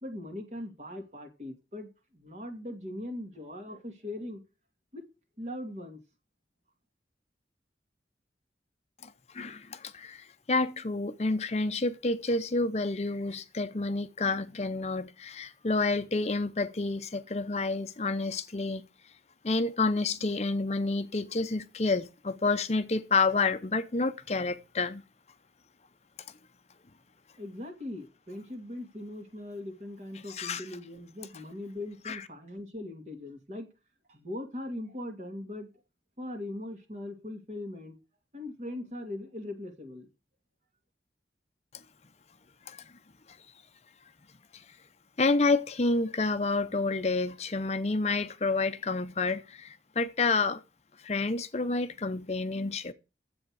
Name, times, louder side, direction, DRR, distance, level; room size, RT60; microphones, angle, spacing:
voice 1, 0.0-4.4 4.9-5.0 5.4-6.0 27.4-33.7 34.1-35.7 36.2-38.0 38.3-40.1, left 1 dB, 40° right, 2.4 m, -40 dB
voice 2, 9.0-18.9 19.4-25.0 30.3-30.6 32.1-32.2 42.7-42.8 44.5-44.6 45.2-50.6 51.0-52.9, left 3 dB, 35° left, 0.6 m, -29 dB
10.5 x 8.0 x 4.7 m
head